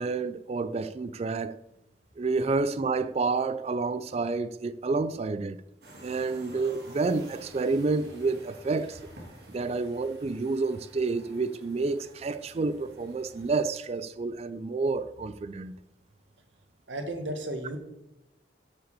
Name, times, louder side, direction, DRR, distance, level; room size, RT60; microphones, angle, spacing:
voice 1, 0.0-1.6 2.2-5.6 6.0-9.0 9.5-15.8, right 3 dB, 35° right, 0.3 m, -29 dB
sound 1, 5.8-13.5, right 1 dB, 60° right, 2.6 m, -50 dB
voice 2, 16.9-17.8, right 1 dB, 85° right, 1.7 m, -34 dB
8.3 x 6.8 x 6.8 m
head